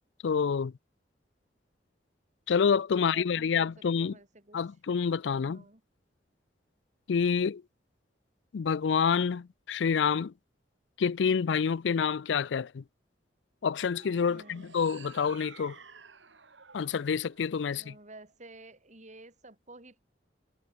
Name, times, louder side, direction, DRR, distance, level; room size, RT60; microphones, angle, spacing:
voice 1, 0.2-0.7 2.5-4.2 4.5-5.6 7.1-7.6 8.5-10.3 11.0-12.8 13.6-15.8 16.7-17.9, left 6 dB, 75° left, 0.4 m, -28 dB
voice 2, 3.0-4.6 5.3-5.8 14.3-14.7 17.7-20.0, right 2 dB, 40° right, 5.6 m, -52 dB
sound 1, 13.8-18.2, right 5 dB, 85° right, 3.3 m, -53 dB
head